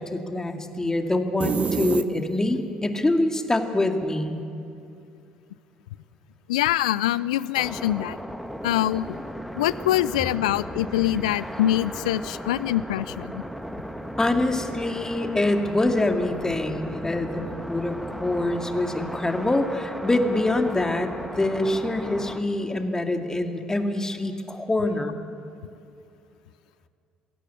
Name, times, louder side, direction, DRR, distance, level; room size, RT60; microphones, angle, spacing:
voice 1, 0.0-4.4 14.2-21.1 21.4-25.2, left 2 dB, 15° left, 5 dB, 2.3 m, -25 dB
sound 1, 1.4-2.6, right 5 dB, 35° right, 0.8 m, -26 dB
voice 2, 6.5-8.2 8.6-9.2 9.6-13.4, left 13 dB, 80° left, 19 dB, 0.4 m, -24 dB
sound 2, 7.6-22.4, equal, ahead, 1.8 m, -36 dB
22.0 x 16.5 x 8.4 m, 2.5 s
hypercardioid pair, 55°, 4 cm